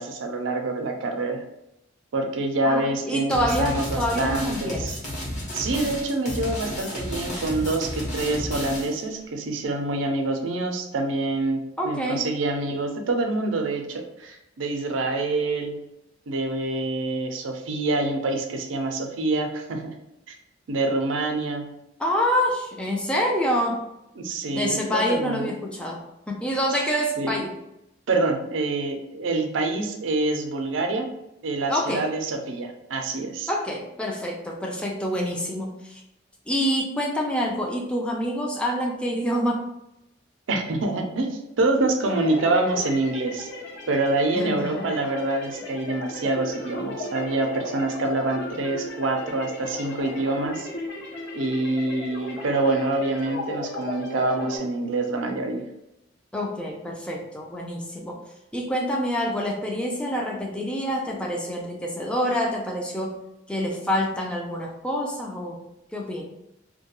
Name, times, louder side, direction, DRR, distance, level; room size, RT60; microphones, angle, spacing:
voice 1, 0.0-1.4 2.1-5.0 5.5-15.8 16.3-19.9 20.3-20.4 20.7-21.7 24.2-25.5 27.2-27.4 28.1-31.1 31.4-33.5 40.5-43.5 43.9-50.7 51.3-55.6, right 2 dB, 85° right, 4 dB, 0.5 m, -26 dB
voice 2, 2.6-4.9 11.8-12.2 22.0-23.8 24.5-26.0 26.3-27.5 31.7-32.1 33.5-36.0 36.5-39.7 44.3-44.9 56.3-58.1 58.5-63.2 63.5-65.6 65.9-66.2, equal, 5° left, -1 dB, 0.4 m, -27 dB
sound 1, 3.3-9.0, equal, 40° left, 0.9 m, -32 dB
sound 2, 42.0-54.6, left 2 dB, 60° left, 0.6 m, -36 dB
2.2 x 2.2 x 2.9 m, 0.87 s
head